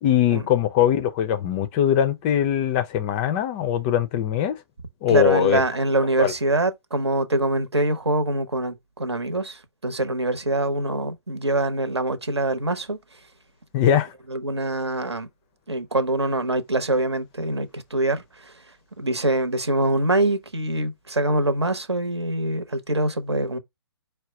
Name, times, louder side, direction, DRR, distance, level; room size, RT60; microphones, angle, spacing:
voice 1, 0.0-4.6 5.0-5.6 6.2-6.3 13.7-14.1, left 10 dB, 20° left, 0.4 m, -21 dB
voice 2, 5.1-13.0 13.8-13.9 14.3-15.3 15.7-18.5 19.0-23.6, right 2 dB, 80° right, 1.0 m, -24 dB
4.7 x 2.2 x 4.7 m
figure-of-eight pair, 130°, 14 cm